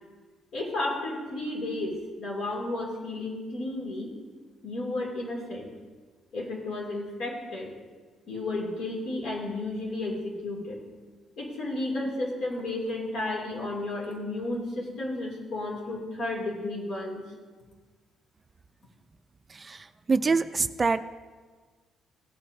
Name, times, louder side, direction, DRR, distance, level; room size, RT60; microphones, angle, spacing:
voice 1, 0.5-4.1 4.6-5.7 6.3-7.7 8.3-10.8 11.4-17.2, left 2 dB, 65° left, -1 dB, 2.6 m, -32 dB
voice 2, 19.5-21.0, right 4 dB, 25° right, 11 dB, 0.3 m, -26 dB
16.5 x 8.9 x 2.7 m, 1.4 s
cardioid pair, 130°, 0 cm